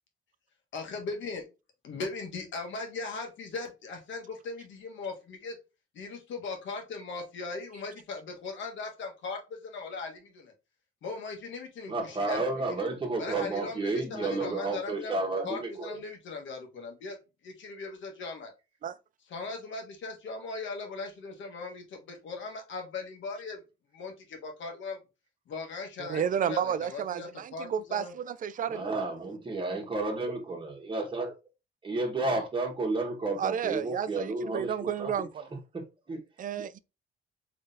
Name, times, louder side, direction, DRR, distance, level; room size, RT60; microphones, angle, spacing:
voice 1, 0.7-1.4 1.8-5.6 5.9-10.5 11.0-12.4 12.8-12.9 13.2-15.2 15.4-17.2 17.4-18.5 19.3-23.6 23.9-25.0 25.5-28.1, left 4 dB, 70° left, 1.4 m, -39 dB
voice 2, 11.9-16.0 28.7-31.3 31.8-35.5 35.7-36.2, right 2 dB, 25° right, 1.4 m, -32 dB
voice 3, 26.0-28.8 33.4-35.3 36.4-36.8, right 8 dB, 45° right, 0.4 m, -31 dB
3.7 x 3.3 x 2.7 m
cardioid pair, 90°, 20 cm